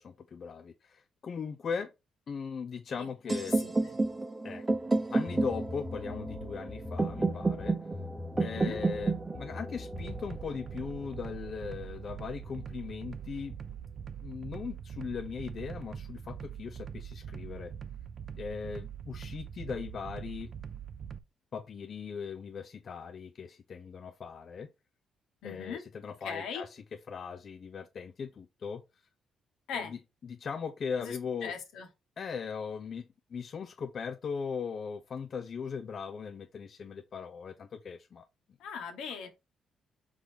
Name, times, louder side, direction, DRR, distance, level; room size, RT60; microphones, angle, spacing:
voice 1, 0.0-1.9 2.3-3.6 4.4-4.7 5.1-7.8 8.4-13.6 14.2-17.7 18.3-20.5 21.5-24.7 25.4-28.8 29.7-31.5 32.2-38.3, left 6 dB, 50° left, 0.5 m, -39 dB
sound 1, 3.3-11.2, right 3 dB, 20° right, 0.8 m, -31 dB
voice 2, 3.6-3.9 8.5-8.8 25.4-25.8 26.2-26.6 29.7-30.0 31.0-31.9 38.6-39.3, left 6 dB, 85° left, 1.4 m, -39 dB
sound 2, 5.3-10.5, left 3 dB, 20° left, 0.7 m, -43 dB
sound 3, 9.9-21.2, right 8 dB, 50° right, 0.5 m, -43 dB
4.8 x 3.9 x 2.8 m
cardioid pair, 90°, 0 cm